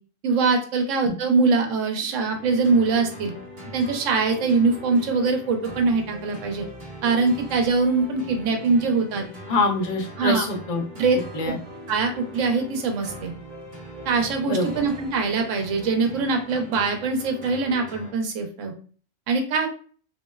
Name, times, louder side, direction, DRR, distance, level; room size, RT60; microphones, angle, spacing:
voice 1, 0.2-3.3 3.7-6.6 7.0-9.2 10.2-10.4 11.0-11.2 11.9-13.3 14.0-18.7 19.3-19.7, right 4 dB, 85° right, 4 dB, 1.0 m, -23 dB
sound 1, 2.3-18.1, equal, 45° right, 0.8 m, -41 dB
voice 2, 9.5-10.8 11.3-11.6 14.5-14.7, left 3 dB, 45° left, 1 dB, 0.6 m, -24 dB
3.0 x 2.5 x 2.2 m, 0.41 s
omnidirectional pair, 1.3 m